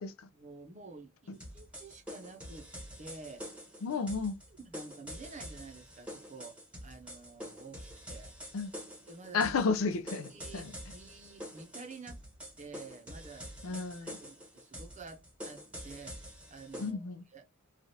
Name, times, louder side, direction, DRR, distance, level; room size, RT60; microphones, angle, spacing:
voice 1, 0.3-2.7 3.0-3.5 3.8-4.0 4.6-8.3 9.1-9.5 10.3-12.2 12.6-17.0 17.3-17.5, right 3 dB, 35° right, 0.7 m, -50 dB
sound 1, 1.3-16.9, equal, 5° right, 1.0 m, -47 dB
voice 2, 3.8-4.3 8.5-8.7 9.3-10.8 13.6-14.2 16.8-17.2, left 4 dB, 75° left, 0.5 m, -32 dB
3.2 x 2.4 x 2.7 m
head